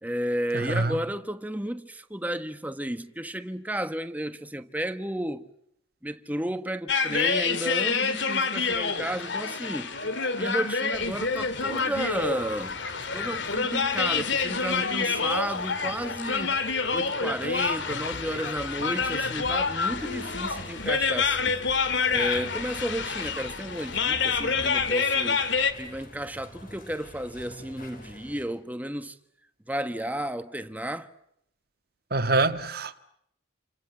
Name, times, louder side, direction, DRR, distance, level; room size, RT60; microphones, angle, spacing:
voice 1, 0.0-5.5 6.0-10.0 10.4-12.8 13.1-16.6 16.9-21.6 22.1-25.4 25.8-29.1 29.7-31.1, right 1 dB, 10° right, 1.3 m, -32 dB
voice 2, 0.5-1.0 32.1-33.0, right 3 dB, 50° right, 1.7 m, -25 dB
sound 1, 6.9-25.7, left 5 dB, 60° left, 2.5 m, -27 dB
sound 2, 10.9-28.4, left 1 dB, 45° left, 6.1 m, -47 dB
sound 3, 17.9-24.9, left 1 dB, 80° left, 7.6 m, -45 dB
29.0 x 27.5 x 7.4 m
head